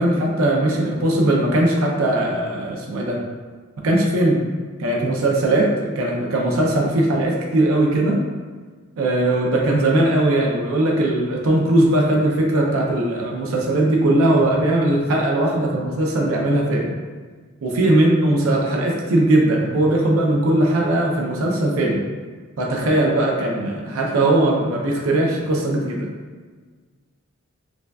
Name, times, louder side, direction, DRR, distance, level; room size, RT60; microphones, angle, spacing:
voice 1, 0.0-3.2 3.8-4.5 4.8-8.2 9.0-17.0 17.6-22.1 22.6-26.1, right 1 dB, 85° right, -1 dB, 0.5 m, -19 dB
4.9 x 2.3 x 2.3 m, 1.5 s
head